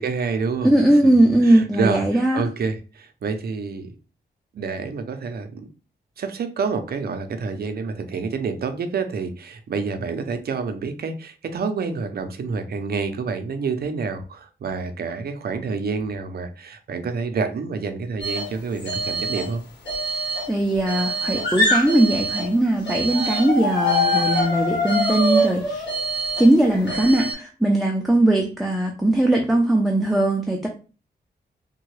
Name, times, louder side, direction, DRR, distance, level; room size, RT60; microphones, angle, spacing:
voice 1, 0.0-0.7 1.0-3.9 4.5-5.7 6.2-19.6, right 5 dB, 60° right, 0.6 m, -28 dB
voice 2, 0.6-2.4 20.5-25.9 26.4-30.7, right 1 dB, ahead, 0.5 m, -19 dB
sound 1, 18.2-18.5 18.8-19.5 19.8-22.5 22.8-27.3, equal, 75° left, 1.6 m, -24 dB
3.5 x 2.2 x 3.2 m
wide cardioid pair, 100°, 18 cm